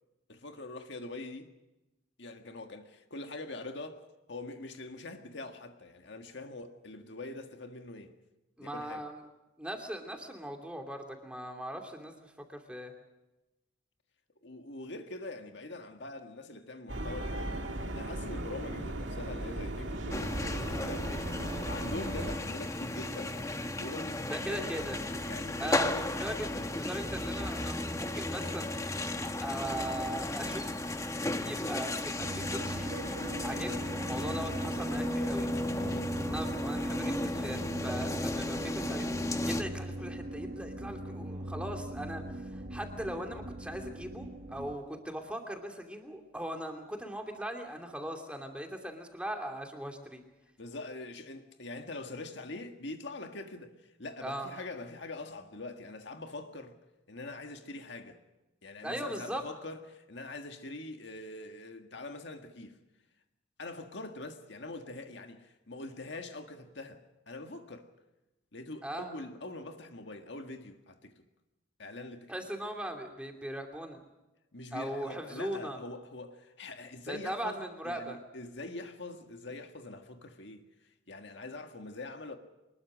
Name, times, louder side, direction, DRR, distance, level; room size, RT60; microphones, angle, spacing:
voice 1, 0.3-1.5 2.2-4.0 4.3-8.1 8.6-9.0 14.4-21.1 21.7-24.7 25.1-26.1 34.2-34.5 35.8-36.2 50.6-56.7 57.1-58.2 58.6-62.8 63.6-67.9 68.5-71.2 71.8-72.3 74.5-80.6 81.1-82.4, left 2 dB, 60° left, 1.7 m, -43 dB
voice 2, 8.6-9.2 9.6-12.9 24.3-25.0 25.6-28.7 29.2-30.7 31.4-33.0 33.4-35.5 36.2-50.2 54.2-54.5 58.8-59.4 68.8-69.1 72.3-74.0 74.7-75.8 77.1-78.2, right 1 dB, 5° right, 2.6 m, -39 dB
sound 1, 16.9-22.4, right 1 dB, 65° right, 2.0 m, -37 dB
sound 2, 20.1-39.6, left 1 dB, 15° left, 1.2 m, -34 dB
sound 3, 32.2-44.7, right 1 dB, 45° right, 1.6 m, -40 dB
24.5 x 21.0 x 6.3 m
head